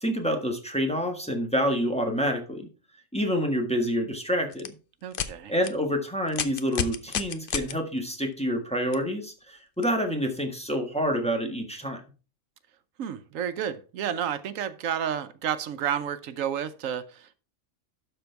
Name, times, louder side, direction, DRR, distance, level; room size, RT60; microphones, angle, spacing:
voice 1, 0.0-2.7 3.1-4.7 5.5-12.0, equal, 5° left, 1.4 m, -27 dB
sound 1, 4.5-4.7 5.1-5.3 5.6-5.7 6.3-7.7 8.9-9.0 9.8-9.9, left 8 dB, 50° left, 0.8 m, -30 dB
voice 2, 5.0-5.5 13.0-17.3, right 9 dB, 90° right, 1.1 m, -31 dB
12.0 x 4.4 x 4.5 m
omnidirectional pair, 1.3 m